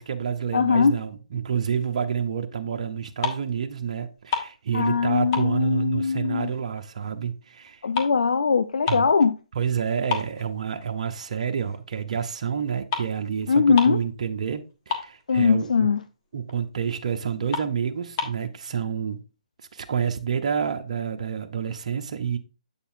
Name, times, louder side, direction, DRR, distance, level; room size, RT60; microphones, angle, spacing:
voice 1, 0.0-7.8 8.9-9.1 9.5-15.9 16.3-19.2 19.7-22.4, right 7 dB, 60° right, 0.7 m, -28 dB
voice 2, 0.5-0.9 4.7-6.5 7.8-9.4 13.5-14.0 15.3-16.0, left 5 dB, 80° left, 0.4 m, -21 dB
sound 1, 2.9-3.6 3.9-5.0 5.3-6.8 7.2-9.2 9.6-9.7 10.1-11.2 11.6-11.8 12.6-12.7 12.9-13.2 13.4-13.5 13.7-14.1 14.4-14.5 14.7-15.5 16.0-16.1 16.5-16.6 17.0-17.1 17.5-18.4, left 6 dB, 35° left, 1.4 m, -31 dB
8.0 x 6.8 x 2.6 m
hypercardioid pair, 145°, 4 cm